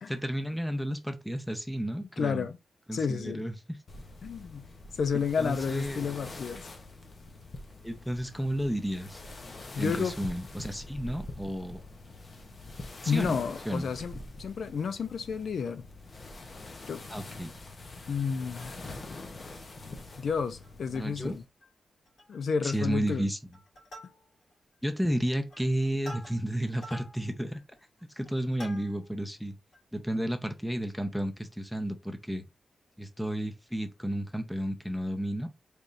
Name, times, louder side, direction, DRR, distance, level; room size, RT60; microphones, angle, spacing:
voice 1, 0.1-2.5 2.9-3.8 5.4-6.1 7.8-9.2 9.8-11.8 13.0-13.4 13.7-13.9 17.1-17.5 20.9-21.3 22.6-23.4 24.8-27.6 28.1-29.5 29.9-32.4 33.0-35.5, right 1 dB, ahead, 0.6 m, -32 dB
voice 2, 2.2-2.6 2.9-3.4 4.2-4.7 4.9-6.7 9.8-10.1 13.1-15.9 16.9-17.0 18.1-18.7 20.2-21.4 22.3-23.3, left 6 dB, 70° left, 0.5 m, -31 dB
sound 1, 3.9-21.4, left 2 dB, 40° left, 0.7 m, -45 dB
Plucked string instrument, 18.4-19.2 19.6-19.7 20.0-20.2 20.6-21.3 21.6-21.7 22.1-22.4 22.8-23.2 23.5-24.6 25.1-29.2 29.7-29.8, equal, 90° left, 2.7 m, -49 dB
4.1 x 3.4 x 2.5 m
wide cardioid pair, 150°, 0 cm